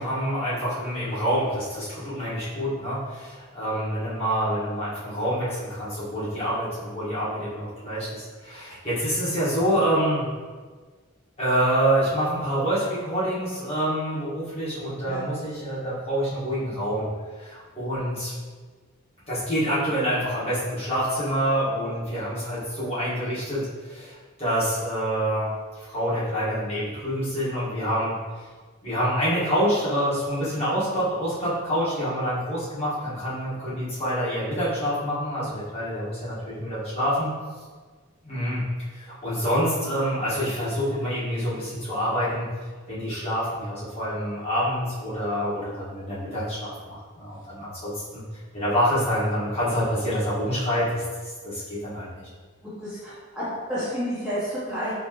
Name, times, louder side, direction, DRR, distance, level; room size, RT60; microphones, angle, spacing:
voice 1, 0.0-10.2 11.4-17.1 17.4-18.3 19.3-25.5 25.8-28.1 28.8-37.3 38.2-38.6 38.9-42.5 42.9-48.2 48.5-51.0 51.4-52.3, equal, 30° left, -11 dB, 1.4 m, -27 dB
voice 2, 52.8-54.9, equal, 5° right, -12 dB, 0.8 m, -30 dB
4.3 x 2.8 x 2.9 m, 1.5 s
head